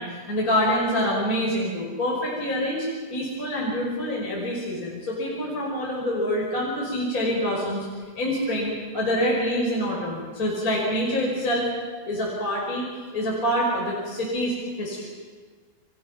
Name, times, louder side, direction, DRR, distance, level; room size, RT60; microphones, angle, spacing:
voice 1, 0.0-7.8 8.2-11.7 12.1-12.9 13.1-15.1, equal, 20° left, -4 dB, 5.4 m, -26 dB
29.5 x 26.5 x 6.0 m, 1.5 s
omnidirectional pair, 4.9 m